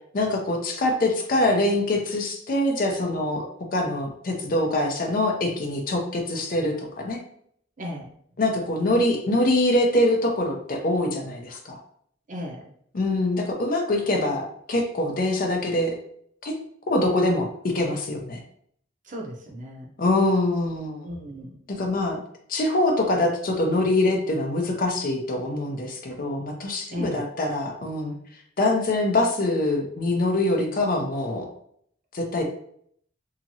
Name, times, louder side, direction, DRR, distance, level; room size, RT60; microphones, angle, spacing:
voice 1, 0.1-3.4 3.7-7.2 8.4-11.8 12.9-15.9 16.4-16.5 16.9-18.4 20.0-21.1 21.7-22.2 22.5-28.2 28.6-31.5 32.1-32.4, left 1 dB, 45° left, 2 dB, 0.5 m, -24 dB
voice 2, 7.8-8.1 12.3-12.6 19.0-19.9 21.0-21.6 26.9-27.3, equal, 45° right, 0 dB, 0.7 m, -35 dB
2.8 x 2.6 x 2.7 m, 0.65 s
head